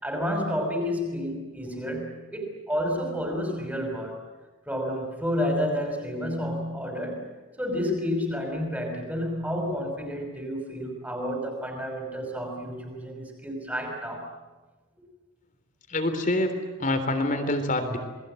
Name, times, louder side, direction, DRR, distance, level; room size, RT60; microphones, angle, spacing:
voice 1, 0.0-4.2 4.7-14.3, equal, 10° right, 3 dB, 5.6 m, -30 dB
voice 2, 15.9-16.5 16.8-18.0, left 1 dB, 35° left, 7 dB, 3.5 m, -25 dB
28.5 x 21.5 x 9.1 m, 1.2 s
head